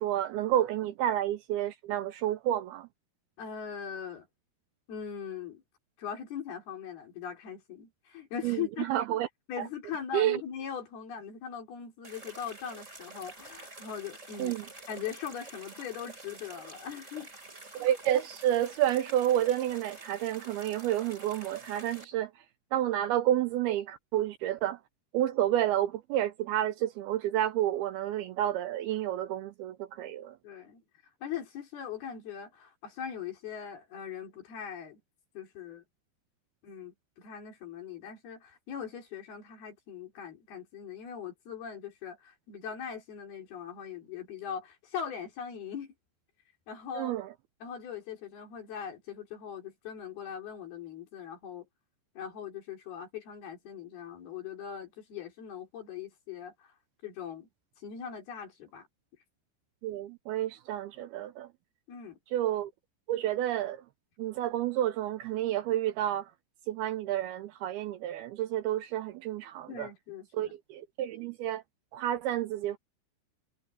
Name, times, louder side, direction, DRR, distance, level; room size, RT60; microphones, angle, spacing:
voice 1, 0.0-2.9 8.4-9.3 9.6-9.7 10.1-10.4 14.4-14.7 17.7-22.3 22.7-24.8 25.1-30.4 46.9-47.3 59.8-61.5 62.3-62.7 63.1-63.8 64.2-66.3 66.7-69.9 70.3-71.6 71.9-72.8, right 12 dB, 85° right, 2.3 m, -30 dB
voice 2, 3.4-4.3 4.9-5.6 6.0-8.9 9.5-14.6 14.9-17.3 30.4-30.8 31.2-35.0 35.3-35.8 36.6-45.9 46.7-47.2 47.6-51.7 52.2-56.7 57.0-57.5 57.8-58.9 61.9-62.2 69.7-70.6, left 8 dB, 60° left, 5.8 m, -40 dB
Ambiance Fountain Small Loop Stereo, 12.0-22.0, right 2 dB, 15° right, 4.6 m, -48 dB
omnidirectional pair, 5.1 m